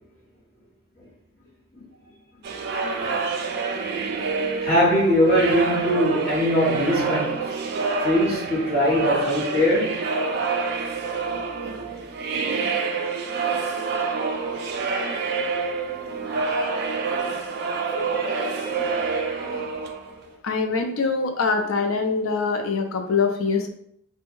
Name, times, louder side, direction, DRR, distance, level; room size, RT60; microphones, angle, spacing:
sound 1, 2.4-20.3, right 4 dB, 50° right, 0.3 m, -27 dB
voice 1, 4.6-7.5 8.0-10.1 12.8-14.6 15.3-16.4 17.0-17.5 17.9-18.2 18.6-19.0 19.4-19.8, equal, 35° left, 1.2 m, -24 dB
voice 2, 20.4-23.7, left 4 dB, 75° left, 0.4 m, -24 dB
2.6 x 2.1 x 3.0 m
head